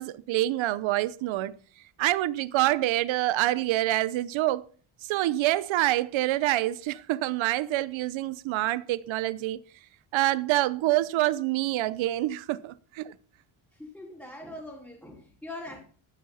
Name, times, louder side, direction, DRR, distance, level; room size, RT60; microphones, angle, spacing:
voice 1, 0.0-1.5 2.0-4.6 5.0-9.6 10.1-13.1, right 16 dB, 80° right, 0.9 m, -26 dB
voice 2, 13.7-15.8, left 1 dB, ahead, 4.2 m, -42 dB
13.0 x 9.8 x 5.7 m
cardioid pair, 125°, 46 cm